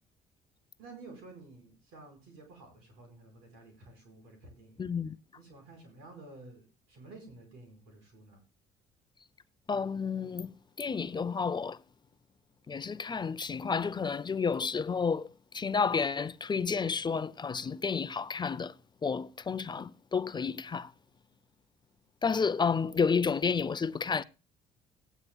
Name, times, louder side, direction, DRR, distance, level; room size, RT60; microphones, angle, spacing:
voice 1, 0.8-4.9 5.4-8.4, right 2 dB, 85° right, 5.2 m, -52 dB
voice 2, 4.8-5.2 9.7-11.8 12.7-18.8 19.0-20.9 22.2-24.2, left 5 dB, 30° left, 0.6 m, -31 dB
17.5 x 9.6 x 2.3 m
supercardioid pair, 70°, 16 cm